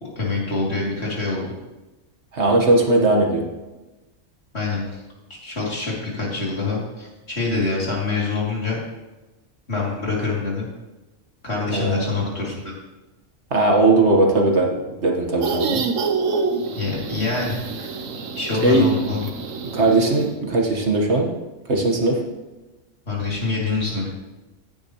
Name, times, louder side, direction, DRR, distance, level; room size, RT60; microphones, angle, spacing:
voice 1, 0.0-1.5 4.5-5.0 5.3-8.8 9.7-10.7 11.4-12.6 16.7-17.9 18.3-19.3 23.1-24.1, left 3 dB, 50° left, -4 dB, 3.2 m, -25 dB
voice 2, 2.3-3.4 11.7-12.1 13.5-14.7 15.0-15.8 18.6-18.9 19.7-21.3 21.7-22.2, right 2 dB, 55° right, 1 dB, 1.7 m, -18 dB
sound 1, 15.4-20.3, right 4 dB, 75° right, 1.3 m, -27 dB
14.5 x 9.9 x 3.1 m, 1.1 s
omnidirectional pair, 1.4 m